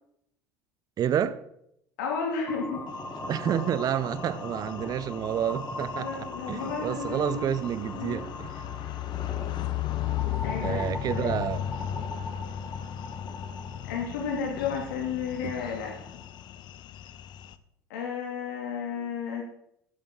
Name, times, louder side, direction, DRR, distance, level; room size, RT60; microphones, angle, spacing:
voice 1, 1.0-1.4 3.3-8.6 10.6-11.6 15.4-15.5, right 9 dB, 45° right, 0.7 m, -29 dB
voice 2, 2.0-2.8 5.9-7.4 7.9-8.2 8.8-8.9 10.3-10.9 11.1-11.3 13.8-15.9 17.9-19.4, left 6 dB, 80° left, 2.8 m, -32 dB
sound 1, 2.5-16.5, left 2 dB, 15° left, 4.1 m, -40 dB
sound 2, 3.0-17.6, left 12 dB, 55° left, 0.7 m, -36 dB
12.0 x 8.7 x 4.0 m
hypercardioid pair, 80°, 9 cm